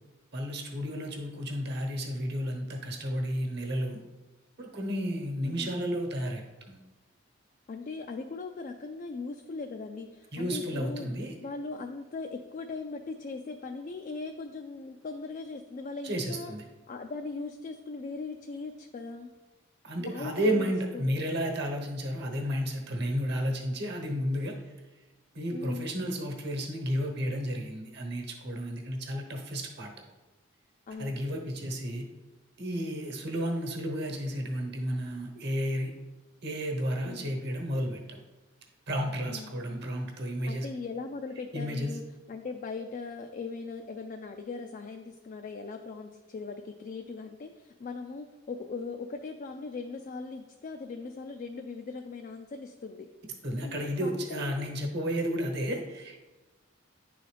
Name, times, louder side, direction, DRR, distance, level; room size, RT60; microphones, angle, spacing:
voice 1, 0.3-4.0 4.6-6.8 10.3-11.3 16.0-16.6 19.8-24.7 25.3-29.9 31.0-32.0 32.6-35.9 36.4-38.2 38.9-40.7 41.5-42.0 53.4-56.3, equal, 55° right, 2 dB, 1.1 m, -32 dB
voice 2, 7.7-11.1 11.4-16.5 16.9-19.3 20.0-20.7 20.9-21.0 25.5-25.9 30.9-31.2 37.0-37.3 39.3-39.5 40.5-42.0 42.3-53.1 53.6-54.5, left 4 dB, 40° left, 5 dB, 0.3 m, -39 dB
9.8 x 3.9 x 3.3 m, 1.2 s
head